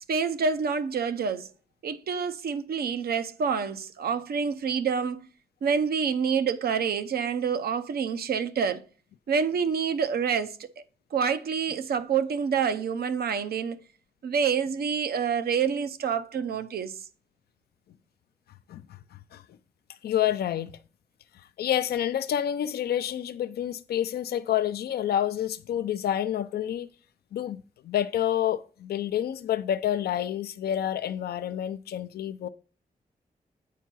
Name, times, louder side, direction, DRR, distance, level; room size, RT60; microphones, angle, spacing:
voice 1, 0.0-1.5 1.8-5.3 5.6-8.8 9.3-10.6 11.1-13.8 14.2-16.9, right 6 dB, 85° right, 0.7 m, -27 dB
voice 2, 20.0-20.7 21.4-26.9 27.3-32.5, left 10 dB, 85° left, 0.4 m, -28 dB
8.3 x 4.5 x 6.0 m
cardioid pair, 50°, 16 cm